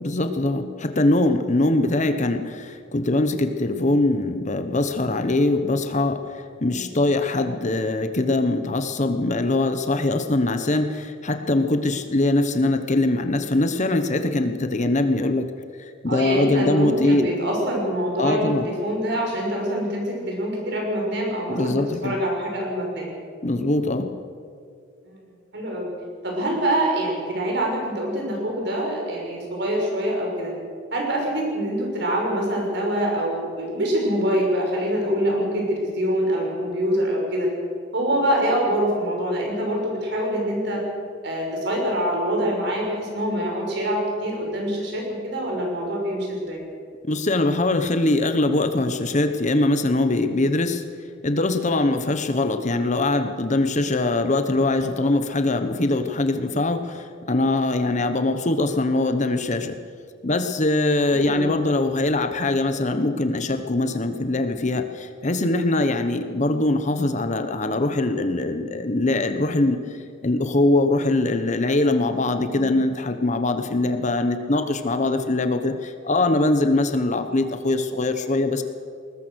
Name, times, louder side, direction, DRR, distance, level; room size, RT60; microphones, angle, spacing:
voice 1, 0.0-6.2 6.6-15.5 15.8-17.3 18.2-18.7 21.5-22.2 23.4-24.1 47.0-50.8 51.2-59.8 60.2-69.8 70.2-78.6, left 2 dB, 40° left, 7 dB, 1.1 m, -22 dB
voice 2, 16.1-23.1 25.1-25.2 25.5-25.9 26.2-30.5 30.9-37.5 37.9-40.8 41.2-46.6 61.1-61.5 72.5-72.8, equal, 60° right, 0 dB, 6.1 m, -25 dB
20.5 x 20.0 x 6.5 m, 2.2 s
head